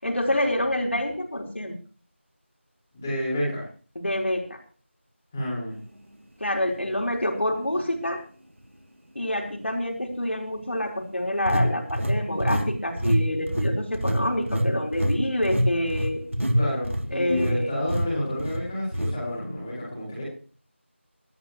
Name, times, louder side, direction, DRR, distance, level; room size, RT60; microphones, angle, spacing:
voice 1, 0.0-1.7 3.9-4.6 6.4-8.2 9.1-16.2 17.1-17.7, left 1 dB, 65° left, 0 dB, 4.5 m, -27 dB
voice 2, 2.9-3.6 5.3-5.8 16.5-20.2, left 1 dB, 10° left, -9 dB, 5.9 m, -29 dB
sound 1, 7.0-7.1 7.7-7.9 11.5-12.7 13.0-13.2 13.5-17.6 17.9-18.1 18.4-18.6 18.9-19.1, equal, 80° right, 3.0 m, -25 dB
21.0 x 13.0 x 3.2 m, 0.41 s
figure-of-eight pair, 175°, 7 cm